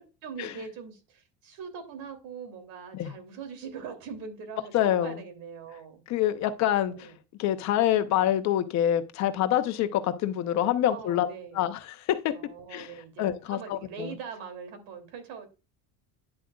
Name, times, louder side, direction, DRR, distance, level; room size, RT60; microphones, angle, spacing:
voice 1, 0.2-6.0 6.8-7.1 8.1-8.3 10.9-11.7 12.3-15.5, right 6 dB, 65° right, 3.1 m, -42 dB
voice 2, 4.7-5.2 6.1-7.1 7.4-11.3 11.5-12.3 12.7-12.9 13.2-14.1, left 11 dB, 45° left, 0.9 m, -26 dB
10.0 x 7.6 x 2.4 m
cardioid pair, 175°, 38 cm